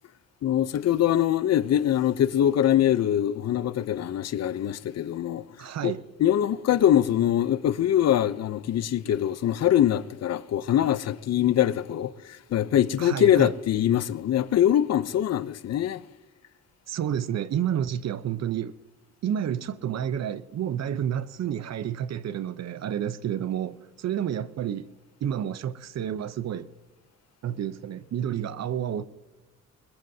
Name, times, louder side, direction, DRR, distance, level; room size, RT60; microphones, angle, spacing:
voice 1, 0.4-5.4 5.8-5.9 6.2-12.1 12.5-16.0, left 11 dB, 55° left, 0.7 m, -23 dB
voice 2, 5.6-6.0 13.0-13.5 16.9-18.8 19.2-24.9 25.2-26.7 27.4-29.0, right 9 dB, 60° right, 0.8 m, -30 dB
21.5 x 21.0 x 2.8 m
cardioid pair, 90°, 30 cm